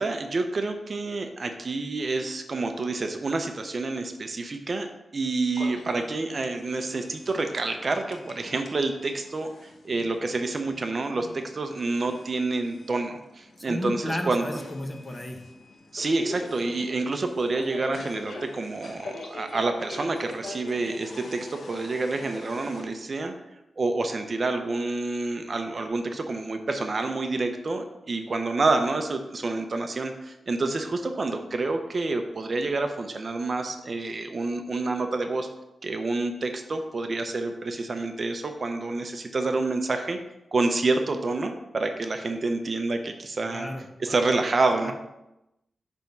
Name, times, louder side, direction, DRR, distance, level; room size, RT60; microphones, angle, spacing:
voice 1, 0.0-4.9 5.1-14.6 15.9-23.4 23.8-35.5 35.8-40.2 40.5-43.7 44.0-44.9, right 3 dB, 45° right, 6 dB, 0.7 m, -28 dB
sound 1, 5.5-22.8, left 2 dB, 70° left, 1.1 m, -43 dB
voice 2, 13.6-15.4 43.4-44.1 44.8-44.9, left 1 dB, 20° left, 3 dB, 1.1 m, -34 dB
8.9 x 3.6 x 5.4 m, 0.92 s
wide cardioid pair, 105°, 0 cm